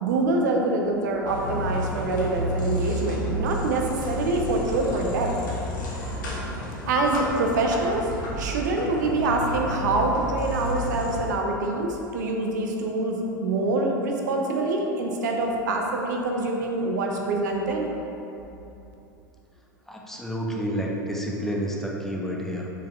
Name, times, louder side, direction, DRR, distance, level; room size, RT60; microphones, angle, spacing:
voice 1, 0.0-5.3 6.9-8.1 8.4-17.8, right 2 dB, 60° right, 1 dB, 0.5 m, -25 dB
sound 1, 1.2-11.2, equal, 70° left, 0.8 m, -31 dB
voice 2, 19.9-22.7, equal, 5° left, -2 dB, 0.4 m, -29 dB
4.0 x 3.6 x 2.2 m, 2.9 s
figure-of-eight pair, 85°, 11 cm